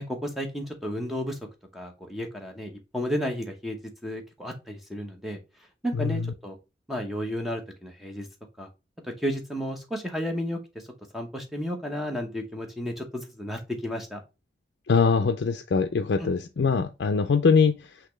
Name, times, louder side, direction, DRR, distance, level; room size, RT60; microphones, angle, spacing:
voice 1, 0.0-1.4 1.7-5.4 5.8-6.6 6.9-8.3 8.6-8.7 9.2-10.6 11.1-14.2 16.2-16.3, equal, ahead, 0.8 m, -32 dB
voice 2, 6.0-6.3 14.9-17.8, left 5 dB, 70° left, 0.4 m, -22 dB
5.8 x 2.9 x 3.1 m
head